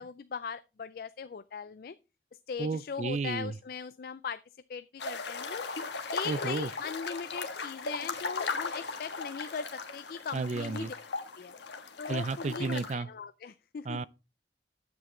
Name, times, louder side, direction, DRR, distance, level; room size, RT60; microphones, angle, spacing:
voice 1, 0.0-2.0 2.5-4.4 4.7-5.6 6.1-10.9 11.4-11.5 12.0-14.0, left 6 dB, 50° left, 0.3 m, -39 dB
voice 2, 2.6-3.5 6.3-6.7 10.3-10.9 12.1-13.1 13.9-14.0, right 3 dB, 40° right, 0.4 m, -32 dB
sound 1, 5.0-13.0, left 4 dB, 70° left, 1.3 m, -38 dB
9.4 x 7.8 x 3.8 m
head